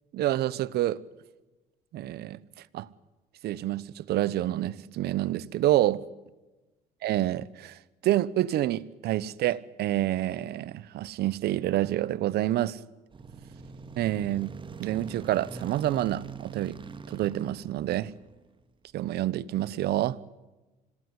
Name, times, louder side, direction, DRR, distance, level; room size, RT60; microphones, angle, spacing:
voice 1, 0.1-1.0 1.9-2.4 2.7-2.9 3.4-6.0 7.0-12.8 14.0-14.5 14.8-16.8 17.1-18.1 18.9-20.2, right 14 dB, 75° right, 1.1 m, -28 dB
sound 1, 13.1-18.6, right 5 dB, 30° right, 1.9 m, -43 dB
26.5 x 18.5 x 9.7 m
cardioid pair, 110°, 17 cm